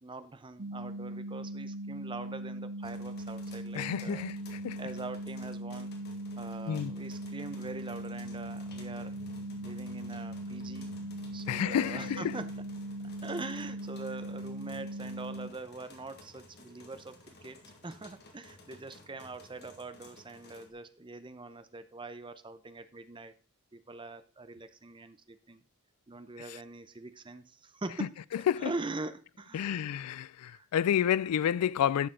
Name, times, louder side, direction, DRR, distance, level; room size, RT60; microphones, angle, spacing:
voice 1, 0.0-4.3 4.8-5.9 6.4-9.1 9.6-10.9 11.3-12.6 13.2-17.6 17.8-23.3 23.7-25.6 26.1-29.9 30.4-30.9, right 3 dB, 20° right, 0.7 m, -43 dB
sound 1, 0.6-15.5, right 1 dB, 65° right, 0.9 m, -40 dB
sound 2, 2.8-20.7, left 2 dB, 50° left, 1.9 m, -54 dB
voice 2, 3.8-4.3 4.6-4.8 6.7-6.9 11.5-12.2 28.5-28.7 29.5-32.1, left 9 dB, 90° left, 0.3 m, -29 dB
11.5 x 6.7 x 3.8 m
head